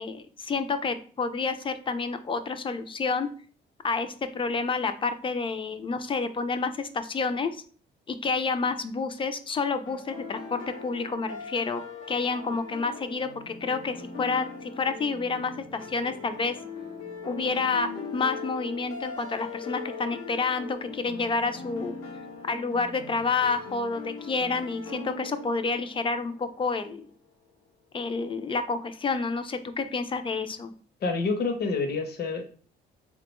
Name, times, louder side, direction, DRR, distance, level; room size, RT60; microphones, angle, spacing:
voice 1, 0.0-3.3 3.8-7.5 8.1-11.8 12.1-16.5 17.2-22.0 22.4-27.1 27.9-30.7, left 4 dB, 25° left, 9 dB, 0.4 m, -29 dB
sound 1, 9.9-26.7, left 4 dB, 85° left, 0.8 m, -41 dB
voice 2, 31.0-32.4, left 4 dB, 55° left, 5 dB, 0.7 m, -28 dB
3.7 x 2.2 x 2.9 m, 0.43 s
cardioid pair, 90°, 20 cm